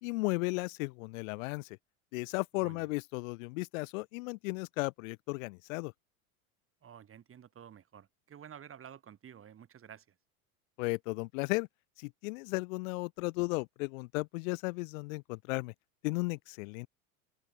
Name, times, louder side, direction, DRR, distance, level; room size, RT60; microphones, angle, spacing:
voice 1, 0.0-1.8 2.1-5.9 10.8-11.7 12.0-15.7 16.0-16.9, left 26 dB, 65° left, 1.3 m, -35 dB
voice 2, 2.6-2.9 6.8-10.0, right 9 dB, 30° right, 4.8 m, -51 dB
hypercardioid pair, 105°, 43 cm